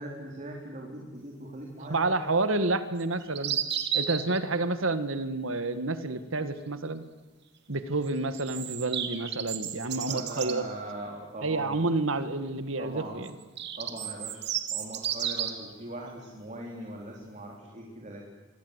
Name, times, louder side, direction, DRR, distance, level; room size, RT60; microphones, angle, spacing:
voice 1, 0.0-2.2 10.1-11.8 12.8-13.3 13.8-14.4 14.7-18.3, right 1 dB, 35° right, 0 dB, 3.9 m, -40 dB
voice 2, 1.8-3.6 3.9-7.0 7.7-10.7 11.4-13.3, right 2 dB, 85° right, 11 dB, 1.8 m, -29 dB
sound 1, 3.0-4.4 8.0-10.6 13.3-15.7, right 9 dB, 60° right, 2.5 m, -32 dB
27.5 x 24.0 x 8.2 m, 1.3 s
head